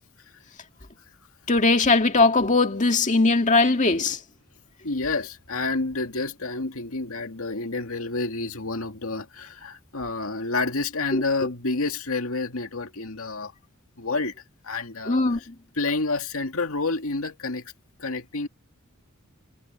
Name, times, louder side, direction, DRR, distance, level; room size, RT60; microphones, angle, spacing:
voice 1, 1.5-4.2 11.1-11.2 15.1-15.5, left 3 dB, 35° left, 2.1 m, -20 dB
voice 2, 4.8-13.5 14.0-14.3 14.6-15.5 15.8-17.7 18.0-18.5, left 3 dB, 80° left, 2.2 m, -29 dB
head